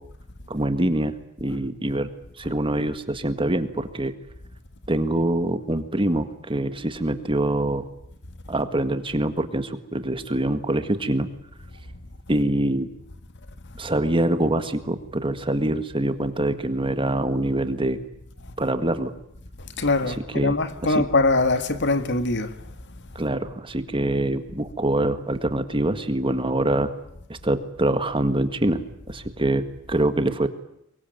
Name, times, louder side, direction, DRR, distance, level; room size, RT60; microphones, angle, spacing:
voice 1, 0.5-1.1 1.4-2.1 2.4-4.1 4.9-7.8 8.5-11.3 12.3-12.9 13.8-18.0 18.6-19.1 20.1-20.6 20.8-21.0 23.2-26.9 27.3-28.8 29.1-30.5, right 1 dB, 25° right, 1.8 m, -24 dB
voice 2, 19.8-22.5, left 3 dB, 55° left, 1.8 m, -22 dB
24.5 x 22.0 x 9.1 m
head